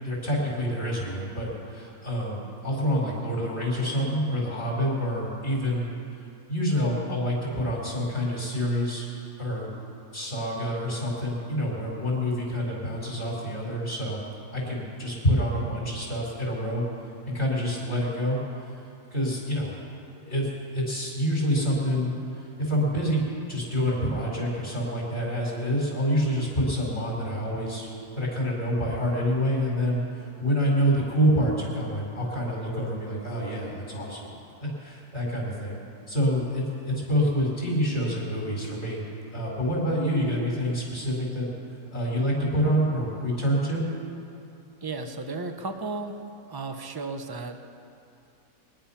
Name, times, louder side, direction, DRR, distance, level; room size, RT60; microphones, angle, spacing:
voice 1, 0.0-9.1 9.4-9.7 10.1-14.2 14.5-16.8 17.2-18.4 18.6-18.8 19.1-19.7 20.1-34.3 34.6-35.8 36.1-39.0 39.3-41.5 41.9-43.8, equal, 40° left, -3 dB, 4.9 m, -27 dB
voice 2, 44.8-46.2 46.5-47.7, right 3 dB, 20° right, 6 dB, 0.6 m, -34 dB
23.0 x 10.5 x 5.8 m, 2.6 s
omnidirectional pair, 1.7 m